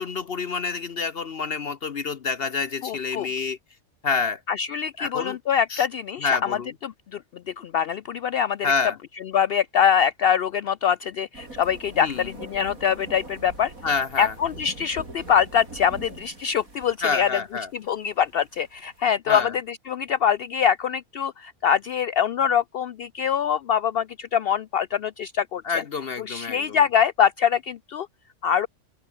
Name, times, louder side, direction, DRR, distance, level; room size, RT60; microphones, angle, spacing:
voice 1, 0.0-3.6 4.0-4.4 5.0-5.4 5.7-5.9 6.2-6.7 8.6-9.0 12.0-12.3 13.8-14.3 17.0-17.7 19.3-19.5 25.6-26.8, left 5 dB, 50° left, 0.9 m, -27 dB
voice 2, 2.8-3.3 4.5-6.3 6.8-7.2 7.5-8.7 9.3-13.7 14.2-17.3 17.7-25.6 26.3-28.1 28.4-28.7, left 8 dB, 70° left, 0.5 m, -24 dB
sound 1, 11.3-19.0, right 2 dB, 65° right, 5.7 m, -44 dB
omnidirectional pair, 1.6 m